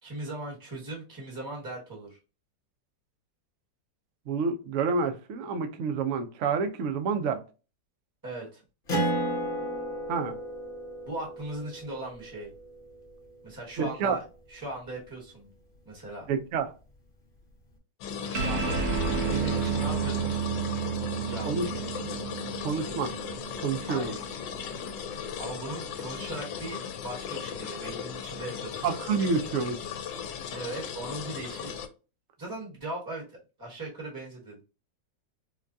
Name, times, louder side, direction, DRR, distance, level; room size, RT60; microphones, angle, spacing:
voice 1, 0.0-2.2 8.2-8.6 11.0-12.5 13.4-15.5 15.8-16.3 18.2-20.4 21.1-22.1 23.8-24.1 25.3-28.9 30.5-31.7 32.4-34.6, right 2 dB, 15° right, 1.0 m, -39 dB
voice 2, 4.3-7.4 10.1-10.4 13.8-14.2 16.3-16.7 21.5-21.7 22.6-23.1 23.6-24.1 28.8-29.8, right 5 dB, 85° right, 0.6 m, -28 dB
Acoustic guitar, 8.9-13.8, right 1 dB, 40° left, 0.9 m, -34 dB
sound 1, 18.0-31.9, left 7 dB, 80° left, 1.3 m, -37 dB
sound 2, 18.3-25.1, right 6 dB, 60° right, 0.9 m, -31 dB
4.8 x 2.3 x 2.6 m
omnidirectional pair, 2.0 m